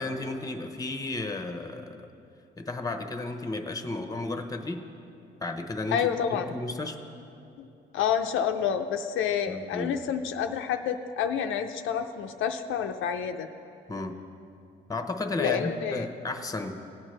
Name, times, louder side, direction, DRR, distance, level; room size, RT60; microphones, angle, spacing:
voice 1, 0.0-2.1 2.6-4.9 5.4-7.0 9.5-9.9 13.9-14.2 14.9-16.8, left 2 dB, 15° left, 7 dB, 0.9 m, -33 dB
voice 2, 5.9-6.5 7.6-7.7 7.9-13.5 15.4-16.1, left 8 dB, 80° left, 6 dB, 0.5 m, -28 dB
17.0 x 8.9 x 3.2 m, 2.6 s
cardioid pair, 90°, 20 cm